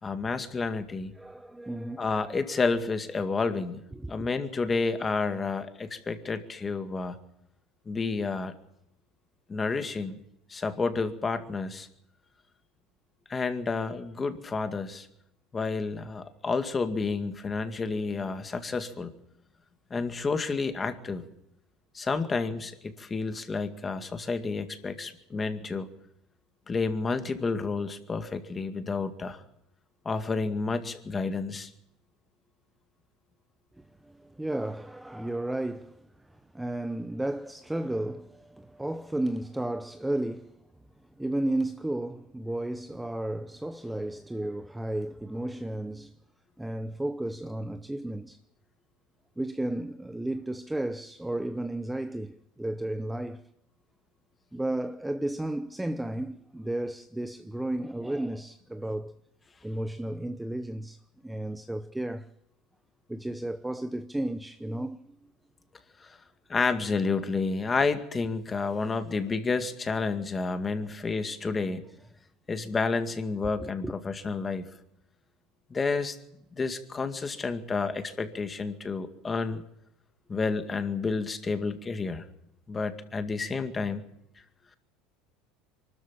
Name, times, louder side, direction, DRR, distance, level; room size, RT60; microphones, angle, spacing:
voice 1, 0.0-1.1 2.0-3.8 4.1-7.2 7.9-8.5 9.5-10.2 10.5-11.9 13.3-15.1 15.5-19.1 19.9-21.2 21.9-25.9 26.7-29.4 30.1-31.7 66.0-66.2 66.5-71.8 72.5-74.7 75.7-76.2 76.6-79.6 80.3-82.2 82.7-84.0, left 4 dB, 20° left, 2.1 m, -30 dB
voice 2, 1.1-2.4 3.9-4.3 33.8-40.5 41.2-46.1 46.6-48.4 49.4-53.4 54.5-59.2 59.6-62.3 63.1-65.0 73.6-73.9, right 1 dB, 5° right, 0.8 m, -33 dB
24.0 x 13.5 x 8.7 m
supercardioid pair, 135°, 0 cm